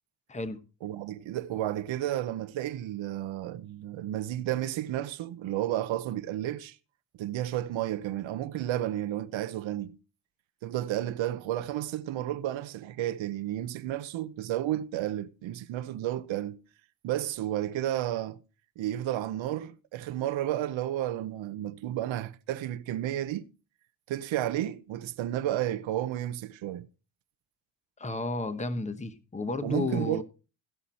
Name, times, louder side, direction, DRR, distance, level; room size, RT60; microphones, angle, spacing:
voice 1, 0.8-6.8 7.2-10.0 10.6-16.6 17.0-18.4 18.8-23.5 24.1-26.9 29.6-30.2, right 13 dB, 70° right, 1.0 m, -32 dB
voice 2, 28.0-30.2, left 2 dB, 15° left, 1.2 m, -32 dB
16.5 x 6.0 x 4.3 m
cardioid pair, 90°, 47 cm